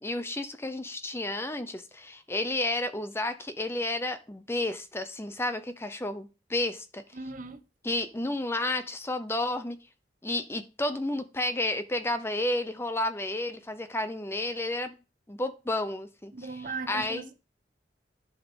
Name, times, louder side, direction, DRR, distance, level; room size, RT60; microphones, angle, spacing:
voice 1, 0.0-7.0 7.8-9.8 10.2-15.0 15.3-17.3, left 1 dB, 15° left, 0.6 m, -31 dB
voice 2, 7.1-7.6 16.3-17.3, right 4 dB, 45° right, 1.0 m, -37 dB
10.5 x 5.1 x 5.2 m
head